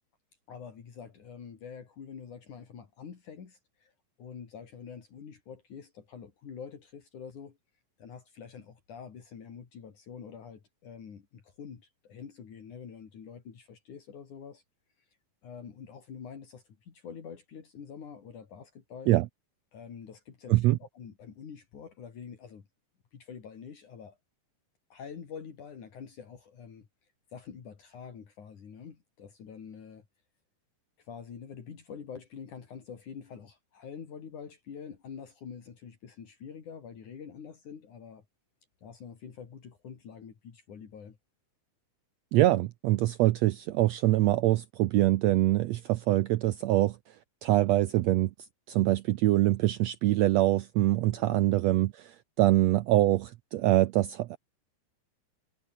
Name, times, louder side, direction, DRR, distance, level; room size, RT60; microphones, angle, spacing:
voice 1, 0.5-3.9 4.2-7.6 8.0-14.6 15.0-15.1 15.4-19.1 19.7-22.7 23.1-24.2 24.9-26.9 27.3-30.1 31.0-38.2 38.8-41.2 51.1-51.4, left 7 dB, 65° left, 4.5 m, -46 dB
voice 2, 42.3-47.2 47.4-48.3 48.7-54.4, right 16 dB, 85° right, 1.5 m, -24 dB
omnidirectional pair, 3.8 m